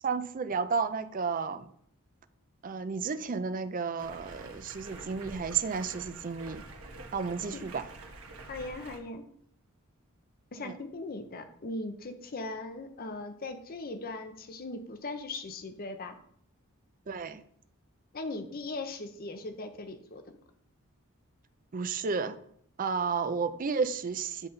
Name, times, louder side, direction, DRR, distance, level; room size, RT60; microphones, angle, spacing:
voice 1, 0.0-1.7 2.6-6.6 7.1-7.9 10.6-10.8 17.1-17.4 21.7-22.4 22.8-24.5, right 5 dB, 40° right, 12 dB, 0.5 m, -32 dB
Stream, 4.0-9.0, right 2 dB, 85° right, 1.2 m, -47 dB
voice 2, 8.5-9.2 10.5-16.2 18.1-20.4, left 2 dB, 45° left, 7 dB, 0.6 m, -39 dB
9.7 x 4.0 x 3.9 m, 0.66 s
head